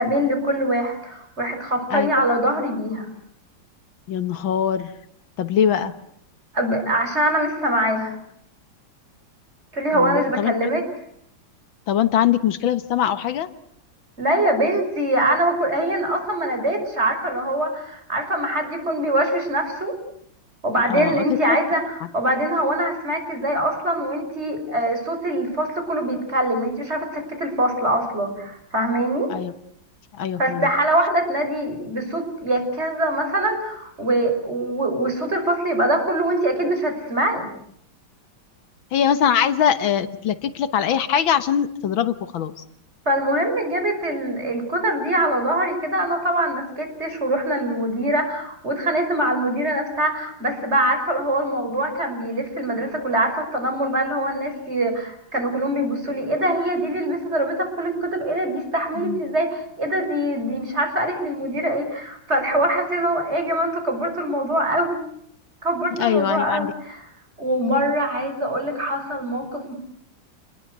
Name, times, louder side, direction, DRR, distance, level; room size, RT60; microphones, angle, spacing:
voice 1, 0.0-3.1 6.5-8.2 9.7-10.8 14.2-19.9 20.6-29.3 30.4-37.5 43.1-65.0 65.6-67.0 67.4-69.7, right 1 dB, 35° right, 5 dB, 6.1 m, -23 dB
voice 2, 4.1-4.9 5.4-5.9 9.9-10.7 11.9-13.5 20.9-21.6 29.3-29.5 30.1-30.7 38.9-42.6 59.0-59.2 65.9-66.7, left 9 dB, 85° left, 12 dB, 2.0 m, -22 dB
29.0 x 21.0 x 8.1 m, 0.70 s
omnidirectional pair, 2.1 m